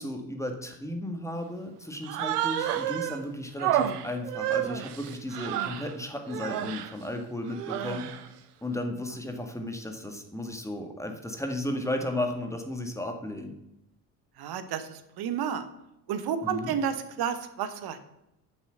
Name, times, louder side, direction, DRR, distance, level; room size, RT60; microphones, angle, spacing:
voice 1, 0.0-8.1 8.6-13.5 16.4-16.7, left 1 dB, 5° left, 4 dB, 1.9 m, -34 dB
Human voice, 2.0-3.2 3.6-5.9 6.3-6.9 7.5-8.3, right 11 dB, 70° right, 0.8 m, -30 dB
voice 2, 14.4-15.7 16.1-18.0, right 8 dB, 50° right, 11 dB, 1.2 m, -31 dB
9.8 x 7.0 x 5.7 m, 0.86 s
figure-of-eight pair, 50°, 48 cm